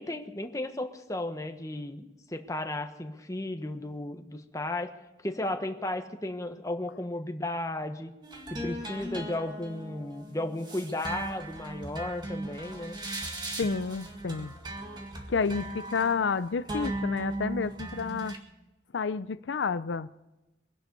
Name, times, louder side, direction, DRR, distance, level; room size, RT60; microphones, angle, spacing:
voice 1, 0.0-4.9 5.2-8.1 8.5-13.0, left 1 dB, 20° left, 6 dB, 1.3 m, -34 dB
sound 1, 8.2-18.4, right 1 dB, 25° right, 2.0 m, -38 dB
voice 2, 13.6-14.5 15.3-18.3 18.9-20.1, left 5 dB, 85° left, 14 dB, 0.5 m, -30 dB
23.5 x 11.5 x 5.4 m, 1.0 s
head